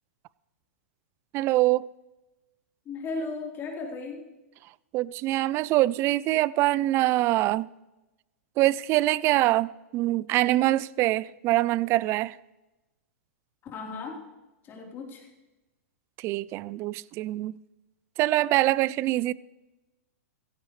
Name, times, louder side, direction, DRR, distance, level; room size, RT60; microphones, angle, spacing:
voice 1, 1.3-1.9 4.9-7.7 8.6-12.4 16.2-17.5 18.2-19.3, right 17 dB, 35° right, 0.4 m, -24 dB
voice 2, 2.9-4.2 13.7-14.2 14.6-15.2, left 3 dB, 30° left, 3.8 m, -35 dB
16.5 x 15.5 x 3.2 m
hypercardioid pair, 125°, 8 cm